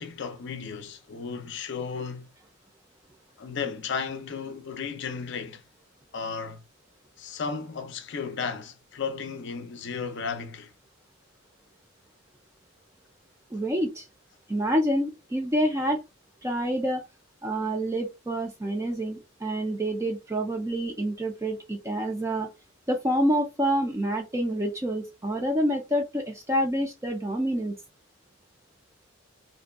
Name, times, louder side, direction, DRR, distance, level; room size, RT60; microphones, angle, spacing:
voice 1, 0.0-2.3 3.4-5.6 6.1-6.6 7.2-10.7, left 5 dB, 55° left, 0.5 m, -34 dB
voice 2, 13.5-14.1 14.5-16.0 16.4-17.0 17.4-22.5 22.9-27.7, equal, 15° right, 0.3 m, -27 dB
2.5 x 2.2 x 2.4 m
head